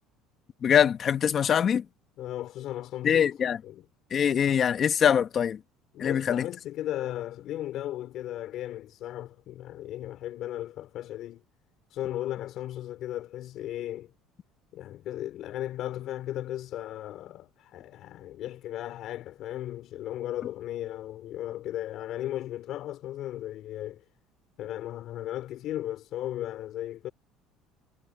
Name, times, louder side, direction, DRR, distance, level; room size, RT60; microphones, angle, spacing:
voice 1, 0.6-1.8 3.0-3.6 4.1-5.6 6.0-6.4, left 8 dB, 40° left, 1.3 m, -23 dB
voice 2, 2.2-3.3 3.6-3.8 5.9-11.4 11.9-14.1 14.7-24.0 24.6-27.1, left 13 dB, 60° left, 4.2 m, -36 dB
cardioid pair, 115°, 0 cm